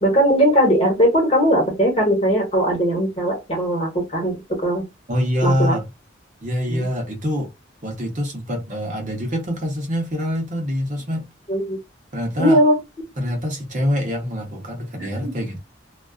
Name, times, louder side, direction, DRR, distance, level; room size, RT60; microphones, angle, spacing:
voice 1, 0.0-4.8 5.4-5.8 6.7-6.8 11.5-11.8 12.4-12.7 15.0-15.3, equal, 30° left, 1.0 m, -19 dB
voice 2, 5.1-5.9 6.4-7.5 7.8-11.3 12.1-12.6 13.2-15.6, equal, 40° right, 0.7 m, -25 dB
2.3 x 2.3 x 2.3 m
head